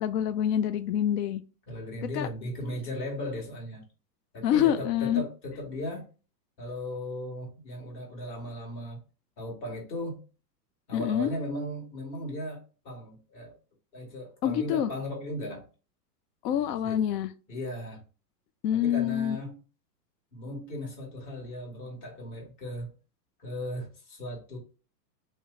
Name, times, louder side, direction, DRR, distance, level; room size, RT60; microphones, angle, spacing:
voice 1, 0.0-1.4 2.1-2.3 4.4-5.2 10.9-11.3 14.4-14.9 16.4-17.3 18.6-19.4, left 10 dB, 70° left, 0.6 m, -26 dB
voice 2, 1.7-3.8 4.3-6.0 6.6-9.0 9.4-10.2 10.9-12.6 12.8-13.5 13.9-15.6 16.8-17.0 17.5-18.0 18.7-19.6 20.3-22.9 23.4-24.6, left 1 dB, 40° left, 1.6 m, -37 dB
3.0 x 2.1 x 3.6 m
supercardioid pair, 145°, 50 cm